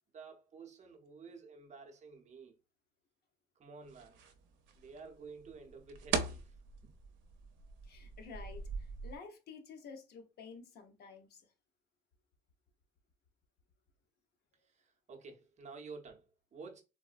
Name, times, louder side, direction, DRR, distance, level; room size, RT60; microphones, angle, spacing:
voice 1, 0.1-2.5 3.6-4.2 4.8-6.5 6.8-6.9 14.6-16.8, right 4 dB, 35° right, 0.7 m, -51 dB
sound 1, 3.8-9.2, right 5 dB, 90° right, 0.5 m, -41 dB
voice 2, 7.8-11.5, left 5 dB, 55° left, 0.7 m, -51 dB
3.6 x 2.0 x 2.4 m
cardioid pair, 125°, 19 cm